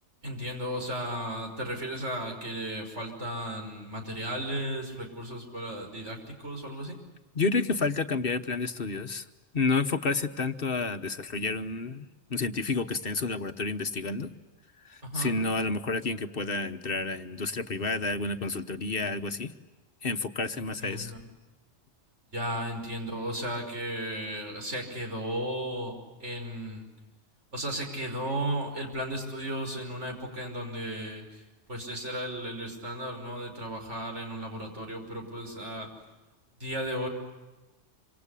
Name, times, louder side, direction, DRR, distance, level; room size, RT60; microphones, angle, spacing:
voice 1, 0.2-7.0 15.0-15.4 20.8-21.2 22.3-26.9 27.5-31.4 31.7-35.9 36.6-37.1, equal, 90° right, 3 dB, 6.0 m, -35 dB
voice 2, 7.3-9.2 9.5-14.3 14.9-19.5 20.0-21.1, left 3 dB, 55° left, 8 dB, 1.3 m, -30 dB
26.5 x 26.0 x 8.4 m, 1.1 s
omnidirectional pair, 1.2 m